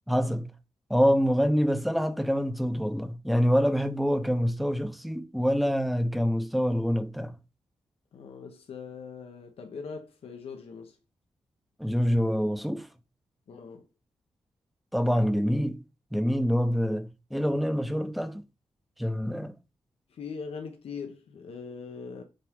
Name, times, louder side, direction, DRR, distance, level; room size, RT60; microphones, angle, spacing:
voice 1, 0.1-0.5 0.9-7.3 11.8-12.9 14.9-15.8 16.1-18.4 19.0-19.5, equal, ahead, 0.6 m, -26 dB
voice 2, 8.1-11.0 13.5-13.9 20.1-22.2, left 5 dB, 80° left, 0.9 m, -41 dB
7.6 x 3.6 x 3.5 m
wide cardioid pair, 120°, 10 cm